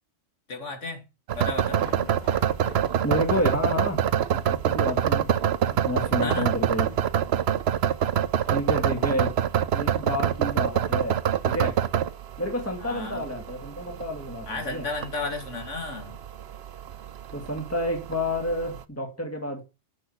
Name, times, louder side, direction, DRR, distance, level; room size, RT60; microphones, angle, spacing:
voice 1, 0.5-1.0 1.3-1.8 6.2-6.5 12.8-13.3 14.5-16.2, left 3 dB, 80° left, 2.7 m, -33 dB
sound 1, 1.3-18.8, right 9 dB, 60° right, 0.9 m, -26 dB
sound 2, 1.7-7.6, left 2 dB, 35° left, 1.9 m, -46 dB
voice 2, 3.0-4.0 4.3-5.3 5.7-6.9 8.5-9.3 9.7-11.8 12.4-14.8 17.3-19.6, left 1 dB, 10° left, 2.3 m, -29 dB
8.8 x 6.2 x 7.9 m
omnidirectional pair, 1.3 m